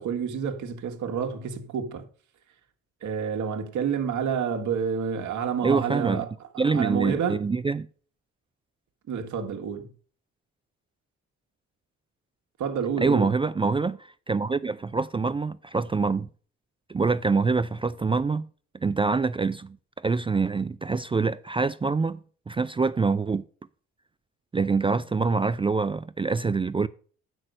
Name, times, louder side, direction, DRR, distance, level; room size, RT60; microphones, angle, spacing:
voice 1, 0.0-2.0 3.0-7.4 9.1-9.9 12.6-13.4, right 7 dB, 75° right, 1.6 m, -29 dB
voice 2, 5.6-6.2 6.6-7.9 13.0-14.0 14.3-16.3 16.9-18.5 18.8-19.8 20.0-23.4 24.5-26.9, right 4 dB, 20° right, 0.3 m, -25 dB
7.6 x 6.2 x 6.4 m
cardioid pair, 90°, 30 cm